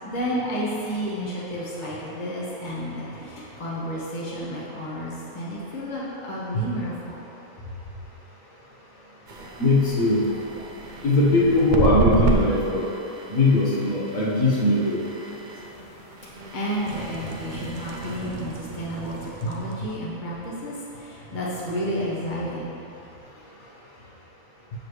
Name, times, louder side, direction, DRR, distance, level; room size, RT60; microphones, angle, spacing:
voice 1, 0.0-7.2 7.6-7.7 16.5-22.8, equal, 35° left, -7 dB, 1.3 m, -31 dB
sound 1, 9.3-20.0, right 2 dB, 50° right, 0.5 m, -31 dB
voice 2, 9.6-10.3 11.0-12.8 13.3-15.0 19.4-19.5, left 1 dB, 70° left, -6 dB, 1.6 m, -20 dB
7.8 x 6.8 x 3.2 m, 2.9 s
omnidirectional pair, 1.5 m